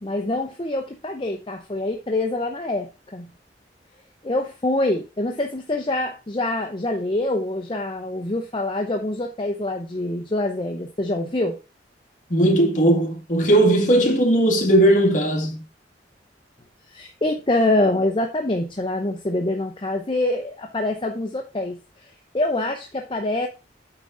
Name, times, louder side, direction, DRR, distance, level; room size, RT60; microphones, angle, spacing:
voice 1, 0.0-3.3 4.2-11.6 16.9-23.5, left 2 dB, 30° left, 0.7 m, -25 dB
voice 2, 12.3-15.7, right 1 dB, 45° left, 2.1 m, -18 dB
9.1 x 3.8 x 4.7 m
head